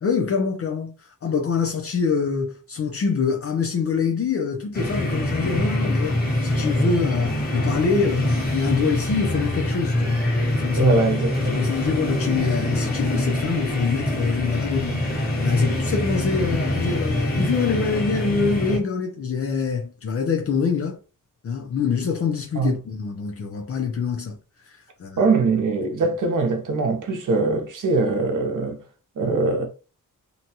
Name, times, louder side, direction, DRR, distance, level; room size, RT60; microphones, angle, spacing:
voice 1, 0.0-11.0 11.5-21.0 21.4-24.4 24.7-25.3, left 5 dB, 45° left, 0.5 m, -25 dB
sound 1, 4.7-18.8, left 1 dB, 25° left, 1.3 m, -24 dB
voice 2, 10.7-11.7 22.6-22.7 25.2-28.8 29.2-29.7, right 3 dB, 65° right, 0.8 m, -22 dB
2.7 x 2.2 x 2.8 m
wide cardioid pair, 145°, 34 cm